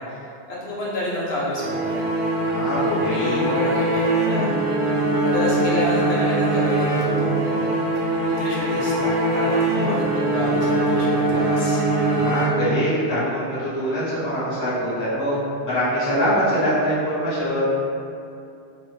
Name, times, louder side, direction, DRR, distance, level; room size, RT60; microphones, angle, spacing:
voice 1, 0.0-2.1 3.0-4.6 5.2-11.8, left 1 dB, 75° left, -6 dB, 0.8 m, -29 dB
sound 1, 1.6-13.0, right 2 dB, 60° right, 0.6 m, -22 dB
voice 2, 2.4-3.4 12.2-15.4 15.6-17.8, equal, 20° left, -10 dB, 0.6 m, -23 dB
2.1 x 2.0 x 3.2 m, 2.6 s
omnidirectional pair, 1.1 m